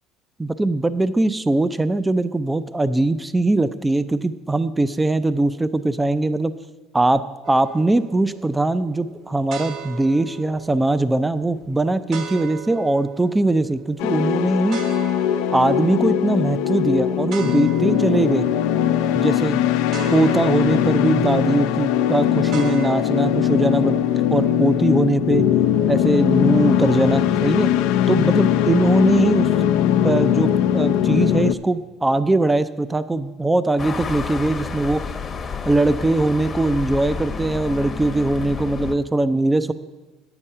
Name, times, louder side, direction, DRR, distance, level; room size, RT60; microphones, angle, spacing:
voice 1, 0.4-6.5 6.9-14.8 15.5-18.5 19.1-19.6 20.1-24.0 24.3-25.5 25.9-27.7 28.1-29.5 30.0-35.1 35.7-39.7, right 2 dB, 10° right, 13 dB, 0.5 m, -21 dB
sound 1, 7.4-23.0, right 8 dB, 60° right, 1.4 m, -38 dB
sound 2, 14.0-31.5, left 10 dB, 75° left, 0.5 m, -20 dB
sound 3, 33.8-39.0, left 5 dB, 30° left, 0.9 m, -30 dB
9.6 x 8.8 x 5.5 m, 1.2 s
supercardioid pair, 85°, 0 cm